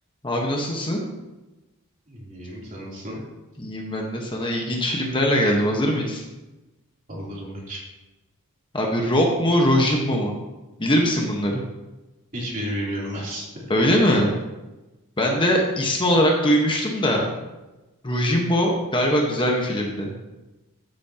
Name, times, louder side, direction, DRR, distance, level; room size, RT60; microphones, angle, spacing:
voice 1, 0.2-1.0 3.6-6.2 8.7-10.3 10.8-11.5 13.7-14.3 15.2-17.3 18.0-20.1, equal, 20° left, 0 dB, 1.3 m, -21 dB
voice 2, 2.1-3.2 7.1-7.8 12.3-13.5, equal, 40° right, -6 dB, 3.3 m, -32 dB
14.5 x 8.5 x 2.9 m, 1.1 s
head